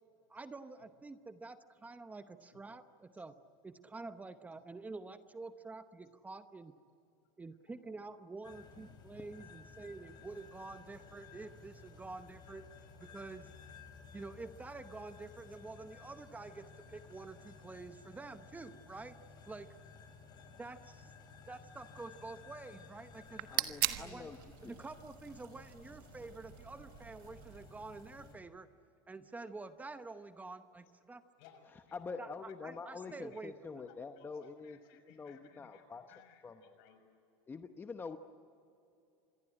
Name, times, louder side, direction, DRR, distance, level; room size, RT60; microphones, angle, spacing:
voice 1, 0.3-3.3 3.6-6.7 7.4-12.7 13.0-13.5 14.1-19.2 19.5-19.7 20.5-21.1 21.5-24.3 24.6-28.7 29.1-31.2 32.2-33.9, right 3 dB, 10° right, 10 dB, 0.9 m, -48 dB
voice 2, 7.6-8.0 31.2-32.0 33.0-33.4 34.2-37.0 37.4-37.5, left 8 dB, 70° left, 6 dB, 6.3 m, -63 dB
sound 1, 8.4-28.4, left 5 dB, 35° left, 4.3 m, -56 dB
sound 2, 23.1-28.3, right 17 dB, 75° right, 1.4 m, -41 dB
voice 3, 23.5-24.4 24.6-24.8 31.9-34.8 35.1-36.0 36.4-36.8 37.5-38.2, left 4 dB, 15° left, 8 dB, 0.9 m, -46 dB
27.0 x 22.0 x 9.9 m, 2.7 s
supercardioid pair, 130°, 12 cm